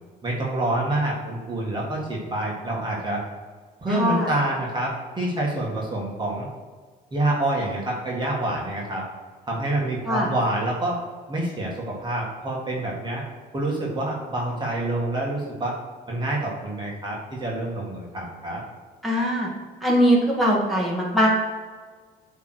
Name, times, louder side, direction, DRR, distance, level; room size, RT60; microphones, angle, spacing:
voice 1, 0.2-3.2 3.8-6.5 7.1-9.0 9.5-11.0 11.3-13.2 13.5-15.8 16.1-18.6, right 1 dB, 25° right, -3 dB, 1.9 m, -27 dB
voice 2, 3.9-4.3 10.0-10.3 19.0-19.5 19.8-21.3, equal, ahead, -5 dB, 2.1 m, -21 dB
8.3 x 3.7 x 6.3 m, 1.5 s
cardioid pair, 110°, 17 cm